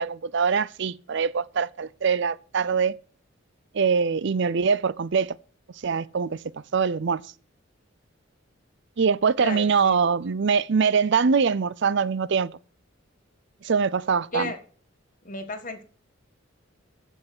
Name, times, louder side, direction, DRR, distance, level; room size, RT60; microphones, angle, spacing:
voice 1, 0.0-2.9 3.7-5.4 5.8-7.2 9.0-12.5 13.6-14.5, right 5 dB, 60° right, 0.5 m, -23 dB
voice 2, 9.4-10.0 14.3-14.6 15.2-15.8, left 2 dB, 40° left, 1.7 m, -33 dB
15.0 x 5.5 x 6.1 m
head